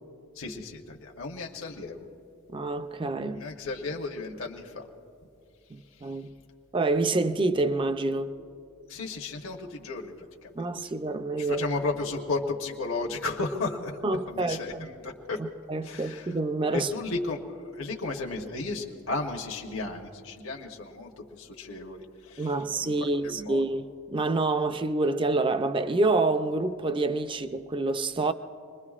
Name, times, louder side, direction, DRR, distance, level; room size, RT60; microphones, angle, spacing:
voice 1, 0.3-2.0 3.3-4.8 6.0-6.2 8.9-10.5 10.8-10.9 11.4-14.0 14.3-15.4 15.8-16.3 16.7-23.6, left 3 dB, 65° left, 1.1 m, -34 dB
voice 2, 2.5-3.4 5.7-6.3 6.7-8.3 10.5-11.7 14.0-14.9 15.7-16.9 22.4-28.3, right 2 dB, 20° right, 0.4 m, -27 dB
26.5 x 21.0 x 2.4 m
head